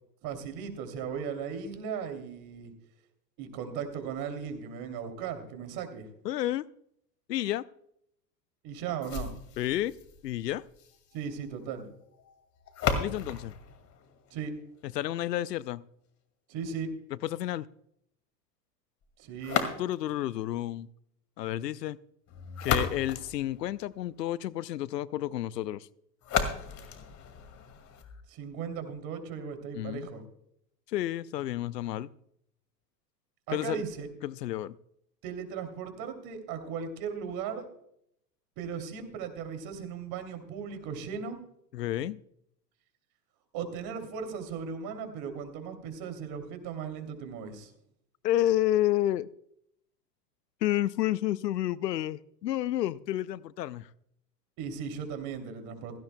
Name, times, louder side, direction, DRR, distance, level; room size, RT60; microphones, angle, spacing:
voice 1, 0.2-2.7 3.4-6.1 8.6-9.3 11.1-11.9 14.3-14.5 16.5-16.9 19.2-19.6 28.3-30.2 33.5-34.1 35.2-37.7 38.6-41.4 43.5-47.7 54.6-56.0, right 7 dB, 50° right, 7 dB, 2.9 m, -37 dB
voice 2, 6.2-6.7 7.3-7.6 9.6-9.9 10.2-10.6 13.0-13.5 14.9-15.8 17.2-17.7 19.8-20.9 21.4-22.0 22.6-25.9 29.7-30.1 30.9-32.1 33.5-33.8 34.2-34.8 41.7-42.2 48.2-49.3 50.6-53.9, left 13 dB, 80° left, 20 dB, 0.6 m, -30 dB
sound 1, 9.0-15.0 19.4-20.2 22.3-24.2 26.2-28.2, left 7 dB, 35° left, 2.2 m, -35 dB
16.5 x 15.5 x 2.2 m, 0.72 s
hypercardioid pair, 95°, 48 cm